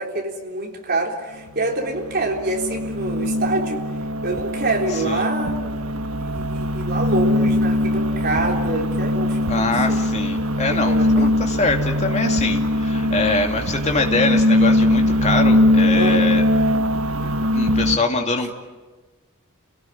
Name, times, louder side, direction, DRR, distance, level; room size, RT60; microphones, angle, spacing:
voice 1, 0.0-3.8 4.2-5.8 6.2-10.0 10.7-11.4 15.9-16.3, right 2 dB, 45° right, 1 dB, 3.8 m, -26 dB
sound 1, 1.5-18.0, left 1 dB, 70° right, 1.4 m, -21 dB
voice 2, 9.5-16.4 17.5-18.5, left 3 dB, 30° left, 3 dB, 2.6 m, -23 dB
29.5 x 18.0 x 9.9 m, 1.3 s
head